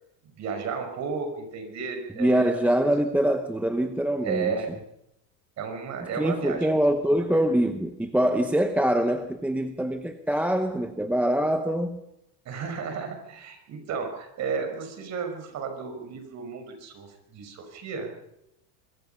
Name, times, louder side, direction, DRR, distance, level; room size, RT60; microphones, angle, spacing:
voice 1, 0.2-2.7 4.2-4.8 5.6-6.8 7.1-7.2 12.5-18.1, right 5 dB, 35° right, 6 dB, 5.6 m, -33 dB
voice 2, 2.1-4.5 6.2-12.0, right 1 dB, 5° right, 7 dB, 0.8 m, -24 dB
24.5 x 22.5 x 5.7 m, 0.83 s
supercardioid pair, 155°, 47 cm